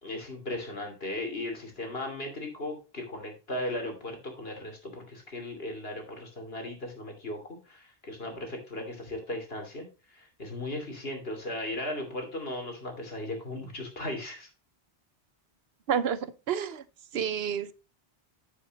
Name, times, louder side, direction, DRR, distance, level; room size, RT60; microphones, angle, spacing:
voice 1, 0.0-14.5, left 1 dB, 70° left, 3.1 m, -37 dB
voice 2, 15.9-16.2 16.5-16.8 17.1-17.7, right 8 dB, 75° right, 1.0 m, -28 dB
10.0 x 8.1 x 2.9 m
omnidirectional pair, 1.0 m